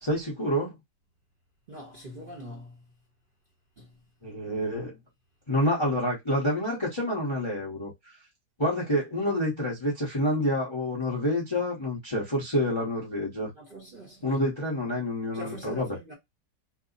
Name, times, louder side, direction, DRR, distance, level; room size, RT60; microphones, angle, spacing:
voice 1, 0.0-0.7 4.2-4.9 5.5-7.9 8.6-13.5 14.2-16.0, left 1 dB, 25° left, 0.6 m, -28 dB
voice 2, 1.7-2.8 3.8-3.9 13.5-14.4 15.3-16.1, equal, 40° right, 0.8 m, -43 dB
3.2 x 2.0 x 3.8 m
omnidirectional pair, 1.9 m